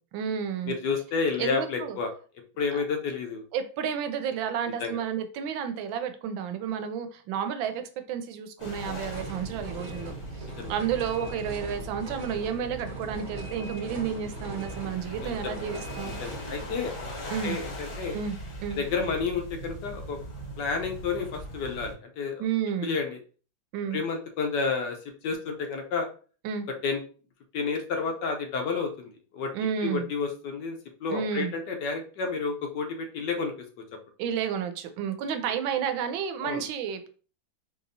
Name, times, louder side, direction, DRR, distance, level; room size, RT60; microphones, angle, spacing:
voice 1, 0.1-0.7 1.4-2.0 3.5-7.8 8.1-10.1 10.7-16.2 17.3-17.6 18.1-18.8 22.4-23.0 23.7-24.0 26.4-26.7 29.5-30.1 31.1-31.5 34.2-37.1, right 8 dB, 85° right, 8 dB, 1.3 m, -31 dB
voice 2, 0.7-2.1 2.6-3.4 4.8-5.0 10.6-10.7 15.2-15.7 16.2-17.1 17.4-18.2 18.7-20.2 20.6-22.4 22.8-23.2 23.9-25.0 25.2-26.1 26.8-27.0 27.5-29.5 29.8-33.5 36.4-36.6, left 4 dB, 70° left, 4 dB, 1.2 m, -30 dB
sound 1, 8.6-21.9, right 1 dB, 35° left, 0.4 m, -40 dB
sound 2, 9.1-16.4, right 1 dB, 30° right, 1.0 m, -41 dB
4.2 x 2.8 x 2.6 m, 0.38 s
omnidirectional pair, 2.1 m